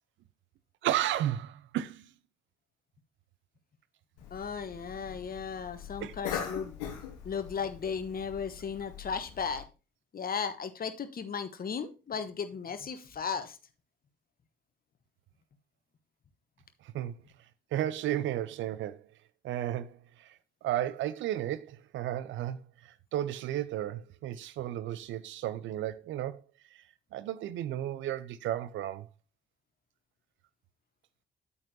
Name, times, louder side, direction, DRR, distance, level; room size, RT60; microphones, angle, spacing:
voice 1, 0.8-2.1 6.0-6.2 16.9-17.1 17.7-19.1 19.4-20.3 20.6-26.4 27.1-29.1, right 12 dB, 65° right, 0.6 m, -33 dB
Cough, 4.2-9.6, left 8 dB, 80° left, 1.1 m, -42 dB
voice 2, 4.3-6.7 7.2-9.6 10.1-13.6, left 6 dB, 45° left, 1.1 m, -35 dB
8.7 x 8.4 x 2.8 m
hypercardioid pair, 40°, 21 cm